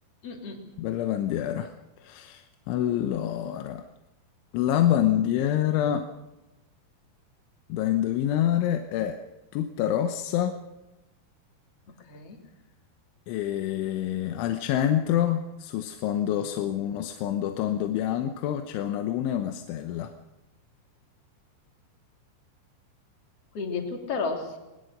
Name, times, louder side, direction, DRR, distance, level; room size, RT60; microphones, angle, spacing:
voice 1, 0.2-0.6 12.1-12.4 23.5-24.6, left 4 dB, 35° left, 3 dB, 3.5 m, -32 dB
voice 2, 0.8-1.7 2.0-3.8 4.5-6.1 7.7-9.2 9.5-10.6 13.3-20.1, left 11 dB, 80° left, 7 dB, 3.4 m, -27 dB
21.0 x 20.5 x 6.6 m, 1.0 s
omnidirectional pair, 5.4 m